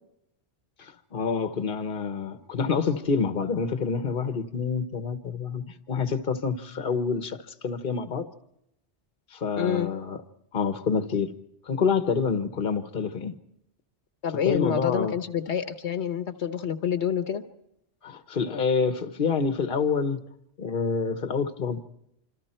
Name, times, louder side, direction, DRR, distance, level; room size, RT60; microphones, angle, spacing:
voice 1, 0.8-8.3 9.3-10.2 10.5-11.3 11.7-13.3 14.4-15.1 18.0-20.2 20.6-21.8, left 5 dB, 50° left, 1.3 m, -27 dB
voice 2, 9.6-9.9 14.2-17.4, left 8 dB, 90° left, 1.3 m, -27 dB
26.5 x 26.0 x 4.4 m
omnidirectional pair, 1.1 m